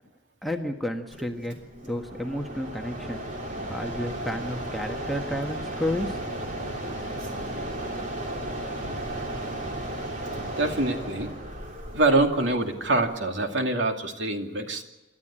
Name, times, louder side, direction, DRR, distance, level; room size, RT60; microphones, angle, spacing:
voice 1, 0.4-1.5 1.8-3.2 3.7-6.2, left 1 dB, ahead, 2 dB, 1.4 m, -31 dB
Mechanisms, 1.1-13.5, right 1 dB, 40° right, 3.3 m, -35 dB
voice 2, 10.6-11.3 11.9-14.8, right 2 dB, 70° right, 4 dB, 2.5 m, -25 dB
28.5 x 13.0 x 8.8 m, 1.1 s
head